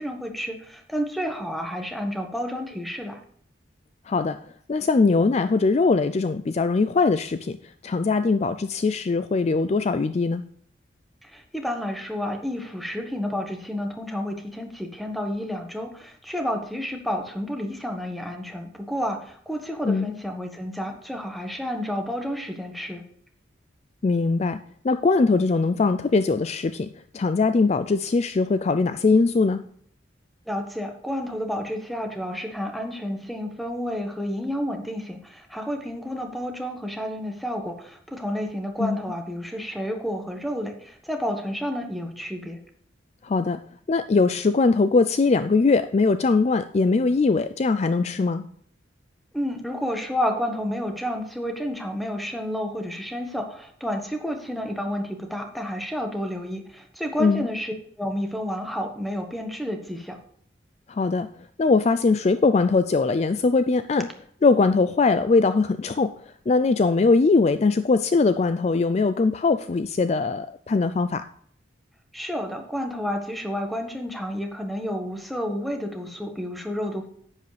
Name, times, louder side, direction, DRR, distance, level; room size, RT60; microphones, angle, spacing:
voice 1, 0.0-3.2 11.2-23.0 30.5-42.6 49.3-60.2 72.1-77.1, equal, ahead, 4 dB, 1.3 m, -30 dB
voice 2, 4.1-4.4 4.7-7.6 7.8-10.4 19.8-20.1 24.0-24.6 24.8-26.9 27.1-29.6 38.8-39.0 43.2-48.5 57.2-57.5 60.9-61.3 61.6-64.1 64.4-66.1 66.5-71.2, left 3 dB, 35° left, 11 dB, 0.3 m, -21 dB
10.5 x 8.2 x 3.3 m, 0.62 s
head